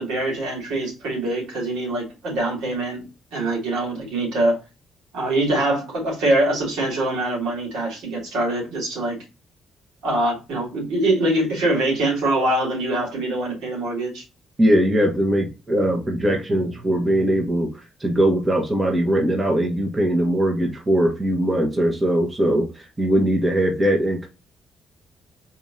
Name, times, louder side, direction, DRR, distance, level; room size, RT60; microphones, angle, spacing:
voice 1, 0.0-3.0 3.3-4.6 5.1-9.2 10.0-14.2, right 1 dB, 90° right, 2.7 m, -23 dB
voice 2, 14.6-17.7 18.0-22.7 23.0-24.3, right 1 dB, 25° right, 1.1 m, -20 dB
4.3 x 2.9 x 3.7 m
cardioid pair, 90°, 0 cm